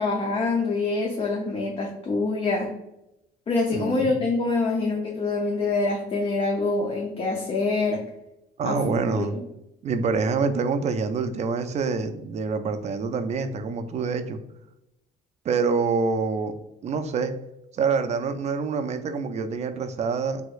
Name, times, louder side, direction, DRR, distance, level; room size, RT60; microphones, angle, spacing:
voice 1, 0.0-2.7 3.5-8.0 8.6-9.4, left 3 dB, 35° left, 0 dB, 0.6 m, -25 dB
voice 2, 3.7-4.1 8.6-9.4 9.8-14.4 15.4-16.5 16.8-17.3 17.7-20.4, right 5 dB, 40° right, 9 dB, 0.4 m, -26 dB
3.4 x 3.0 x 2.3 m, 0.88 s
cardioid pair, 110°, 17 cm